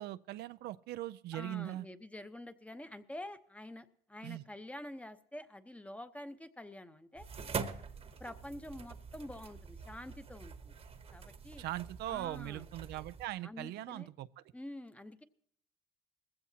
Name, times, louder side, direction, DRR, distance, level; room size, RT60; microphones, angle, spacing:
voice 1, 0.0-1.9 4.2-4.4 11.6-14.4, right 14 dB, 75° right, 0.4 m, -40 dB
voice 2, 1.3-7.3 8.0-10.7 11.1-11.6 12.1-12.6 13.4-14.1 14.5-15.2, left 1 dB, 10° left, 0.8 m, -47 dB
sound 1, 7.2-13.3, right 5 dB, 35° right, 1.1 m, -45 dB
20.0 x 15.5 x 2.8 m
cardioid pair, 110°, 17 cm